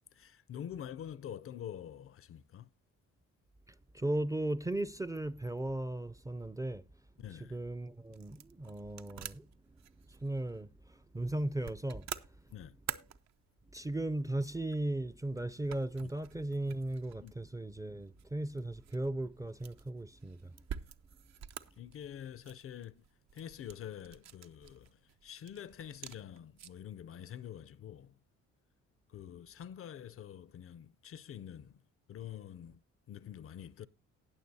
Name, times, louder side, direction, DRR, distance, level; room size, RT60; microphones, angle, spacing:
voice 1, 0.1-2.7 7.2-7.6 12.5-12.8 16.0-16.1 17.2-17.3 21.8-23.0 23.3-28.2 29.1-31.8 32.1-33.9, left 9 dB, 50° left, 0.5 m, -46 dB
voice 2, 3.7-6.8 7.4-12.5 13.7-20.6, right 1 dB, 10° right, 0.4 m, -37 dB
sound 1, 7.4-26.9, right 9 dB, 60° right, 0.7 m, -50 dB
19.0 x 6.7 x 2.7 m
cardioid pair, 90°, 30 cm